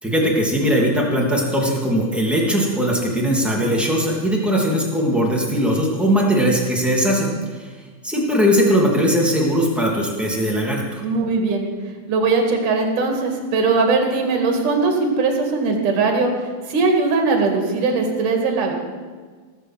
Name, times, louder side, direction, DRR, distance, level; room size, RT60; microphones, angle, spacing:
voice 1, 0.0-7.3 8.0-10.8, equal, ahead, -3 dB, 1.7 m, -19 dB
voice 2, 11.0-11.7 12.1-16.3 16.7-18.7, right 4 dB, 60° right, 2 dB, 3.4 m, -20 dB
18.0 x 7.1 x 7.6 m, 1.5 s
omnidirectional pair, 4.3 m